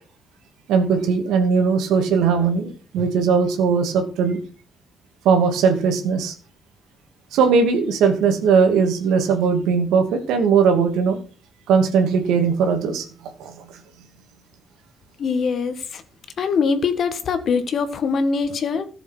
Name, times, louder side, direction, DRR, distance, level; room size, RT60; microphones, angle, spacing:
voice 1, 0.7-4.4 5.2-6.3 7.3-11.2 11.7-13.0 13.4-13.5, right 5 dB, 90° right, 6 dB, 2.6 m, -19 dB
voice 2, 15.2-16.0 16.4-18.8, left 5 dB, 60° left, 10 dB, 1.9 m, -22 dB
14.0 x 7.1 x 6.4 m, 0.39 s
cardioid pair, 90°, 0 cm